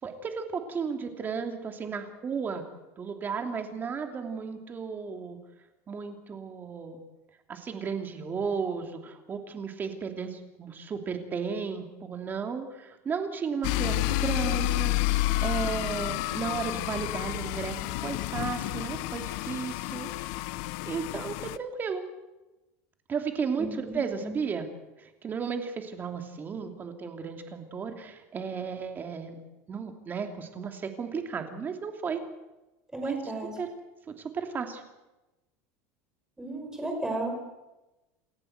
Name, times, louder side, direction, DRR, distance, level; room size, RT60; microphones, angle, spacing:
voice 1, 0.0-2.6 3.0-5.4 5.9-7.0 7.5-14.9 15.4-20.1 20.9-22.1 23.1-24.7 25.0-29.4 29.7-32.2 33.0-33.3 33.6-33.7 34.2-34.8, right 6 dB, 25° right, 5 dB, 2.8 m, -34 dB
sound 1, 13.6-21.6, left 18 dB, 70° left, 0.8 m, -30 dB
voice 2, 23.6-24.4 32.9-33.5 36.4-37.3, right 2 dB, 10° right, 3 dB, 5.6 m, -34 dB
28.5 x 13.5 x 8.0 m, 1.0 s
supercardioid pair, 140°, 8 cm